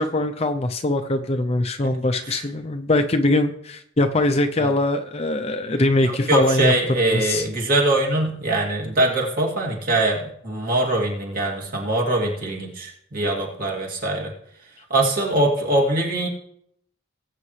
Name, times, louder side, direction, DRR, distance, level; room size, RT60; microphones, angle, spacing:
voice 1, 0.0-6.7 7.1-7.4, left 2 dB, 30° left, 6 dB, 0.6 m, -22 dB
voice 2, 6.0-14.3 14.9-16.3, right 2 dB, 45° right, -1 dB, 2.7 m, -22 dB
19.5 x 8.4 x 3.3 m, 0.72 s
head